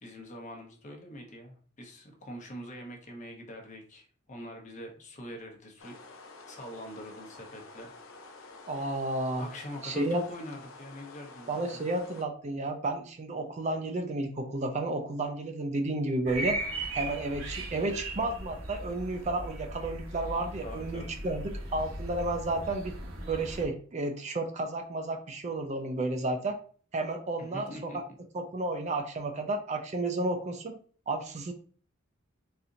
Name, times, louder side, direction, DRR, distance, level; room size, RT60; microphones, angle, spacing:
voice 1, 0.0-6.0 6.5-7.9 8.3-8.9 9.4-11.8 20.6-21.1 27.4-28.0, equal, 35° left, 1 dB, 0.9 m, -44 dB
sound 1, 5.8-12.3, left 3 dB, 80° left, 0.6 m, -50 dB
voice 2, 8.7-9.5 9.8-10.2 11.5-16.6 16.9-22.9 23.3-26.6 26.9-28.0 28.3-30.7 31.1-31.5, right 2 dB, 35° right, 5 dB, 0.4 m, -32 dB
sound 2, 16.3-23.7, right 2 dB, 80° right, 1.1 m, -38 dB
4.2 x 2.6 x 2.5 m, 0.43 s
head